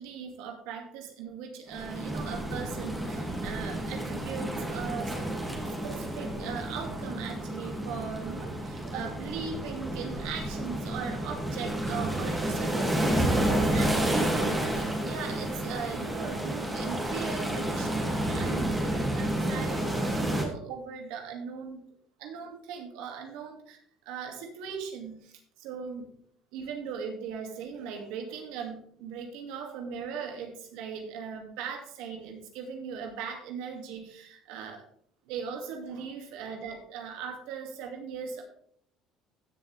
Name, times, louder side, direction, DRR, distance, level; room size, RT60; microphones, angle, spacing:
voice 1, 0.0-5.1 5.7-21.8 22.2-23.8 24.1-26.1 26.5-34.8 35.2-38.4, right 6 dB, 85° right, 3 dB, 2.4 m, -39 dB
sound 1, 1.7-20.4, right 1 dB, 10° right, 2.5 m, -30 dB
15.5 x 7.1 x 3.5 m, 0.62 s
cardioid pair, 130°, 0 cm